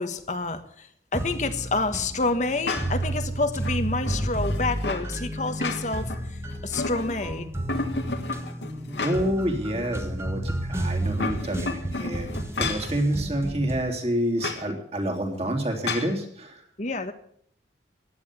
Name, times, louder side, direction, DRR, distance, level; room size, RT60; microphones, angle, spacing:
voice 1, 0.0-7.5 16.8-17.1, left 3 dB, 45° left, 8 dB, 1.3 m, -28 dB
sound 1, 1.1-13.9, right 1 dB, 15° right, 1.6 m, -32 dB
sound 2, 2.6-3.1 3.6-5.1 5.5-6.2 6.5-7.3 7.7-9.4 9.8-9.9 10.9-12.9 14.4-14.6 15.8-16.1, left 3 dB, 75° left, 2.0 m, -32 dB
voice 2, 9.0-12.3 12.6-16.6, right 1 dB, 35° right, 3 dB, 3.1 m, -28 dB
15.5 x 10.5 x 8.4 m, 0.64 s
head